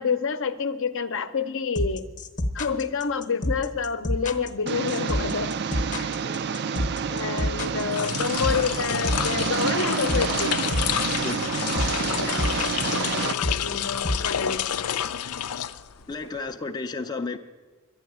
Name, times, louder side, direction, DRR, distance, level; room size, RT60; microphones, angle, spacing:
voice 1, 0.0-2.1 2.5-5.5 6.0-6.2 7.1-10.5 12.2-12.4 13.2-15.1, left 5 dB, 60° left, 10 dB, 0.7 m, -28 dB
sound 1, 1.7-14.9, left 1 dB, 35° left, 0.9 m, -28 dB
Engine, 4.7-13.3, right 6 dB, 50° right, 0.4 m, -29 dB
voice 2, 5.7-6.4 11.2-12.1 16.1-17.4, left 3 dB, 20° left, 4 dB, 0.5 m, -34 dB
sound 2, 7.8-16.2, left 9 dB, 90° left, 0.5 m, -29 dB
11.5 x 10.0 x 9.3 m, 1.3 s
head